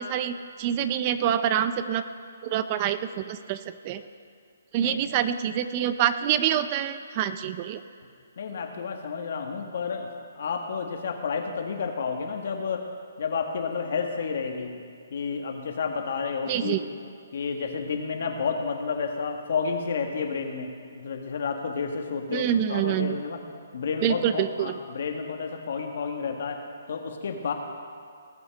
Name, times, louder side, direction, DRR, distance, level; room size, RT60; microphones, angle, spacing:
voice 1, 0.0-2.1 2.4-4.0 4.7-7.8 16.5-16.8 22.3-23.2 24.0-24.8, right 10 dB, 30° right, 12 dB, 0.5 m, -26 dB
voice 2, 8.4-10.1 10.3-12.8 13.2-14.8 15.1-16.8 17.3-23.4 23.7-26.6 26.9-27.5, left 5 dB, 60° left, 4 dB, 1.6 m, -30 dB
19.0 x 7.0 x 5.3 m, 2.2 s
hypercardioid pair, 150°, 0 cm